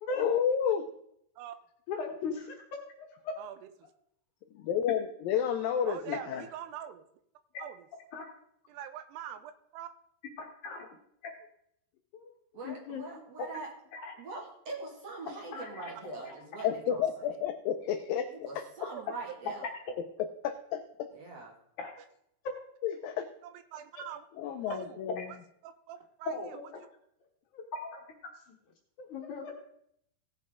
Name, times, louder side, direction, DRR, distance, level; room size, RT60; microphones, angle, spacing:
voice 1, 0.1-0.8 4.6-6.4 16.6-18.6 20.4-21.1 22.8-23.3 24.4-25.3, left 8 dB, 85° left, 8 dB, 2.0 m, -31 dB
voice 2, 1.9-2.6 3.0-3.3 6.3-6.4 7.5-7.7 8.1-8.3 10.4-10.9 11.2-11.3 12.1-12.3 12.6-13.0 13.9-14.1 15.5-15.7 16.2-16.7 21.8-21.9 25.2-25.3 26.3-26.6 27.5-28.0 29.0-29.5, left 3 dB, 65° left, 1 dB, 2.2 m, -38 dB
voice 3, 5.8-7.1 7.6-7.9 8.7-9.9 18.9-19.4 22.0-22.1 23.4-24.3 24.7-25.4 25.6-26.6, right 10 dB, 85° right, 10 dB, 2.8 m, -44 dB
voice 4, 12.5-13.7 14.2-17.3 18.3-19.7 21.1-21.5, right 3 dB, 45° right, -1 dB, 2.6 m, -43 dB
18.0 x 7.0 x 3.6 m, 0.72 s
omnidirectional pair, 4.8 m